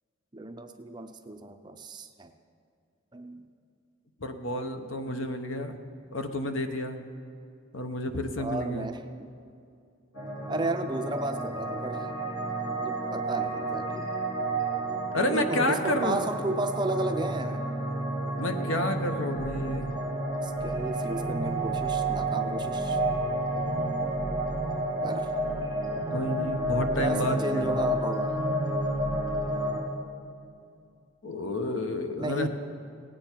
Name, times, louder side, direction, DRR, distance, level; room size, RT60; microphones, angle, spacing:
voice 1, 0.3-2.3 3.1-3.4 8.4-9.3 10.5-12.1 12.5-14.1 15.1-17.6 20.4-23.0 25.0-25.4 27.0-28.4 32.2-32.5, right 2 dB, 20° right, 7 dB, 0.5 m, -33 dB
voice 2, 4.2-5.8 6.1-7.1 7.7-8.9 15.1-16.2 18.4-19.9 26.1-28.0 31.2-32.5, left 1 dB, 65° left, 6 dB, 0.9 m, -30 dB
sound 1, 10.1-29.8, right 1 dB, 85° left, 3.5 m, -30 dB
17.5 x 8.8 x 4.4 m, 2.4 s
head